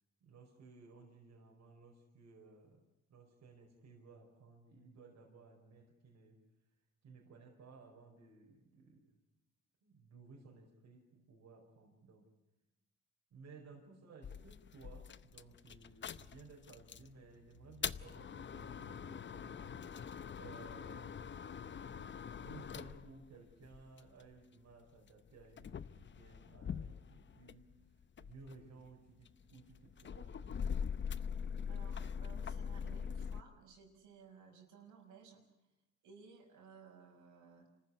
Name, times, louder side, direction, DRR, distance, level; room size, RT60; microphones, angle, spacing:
voice 1, 0.2-2.8 3.1-6.4 7.0-9.2 9.8-12.3 13.3-19.7 20.3-21.5 22.3-27.7 28.2-30.5, right 4 dB, 65° right, 0 dB, 5.0 m, -58 dB
sound 1, 14.2-17.1 17.6-24.3 25.1-27.7 28.0-33.4, left 7 dB, 40° left, 0.8 m, -43 dB
voice 2, 31.7-35.4 36.0-37.7, right 6 dB, 80° right, 0 dB, 5.8 m, -58 dB
26.5 x 14.5 x 9.8 m, 0.97 s
cardioid pair, 90°, 30 cm